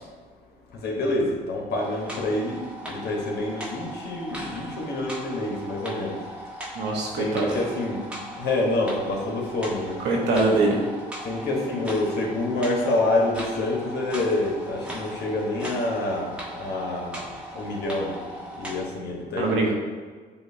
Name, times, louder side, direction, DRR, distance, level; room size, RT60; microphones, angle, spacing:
voice 1, 0.8-2.6 2.9-6.2 7.2-8.0 8.4-10.0 11.2-17.2 17.5-18.1 18.6-19.7, left 2 dB, 65° left, -2 dB, 1.3 m, -27 dB
sound 1, 1.8-18.8, equal, 5° right, 1.2 m, -38 dB
voice 2, 6.7-7.5 10.0-10.8 19.4-19.7, right 3 dB, 75° right, -1 dB, 1.1 m, -23 dB
7.2 x 2.5 x 2.7 m, 1.5 s
supercardioid pair, 80°, 18 cm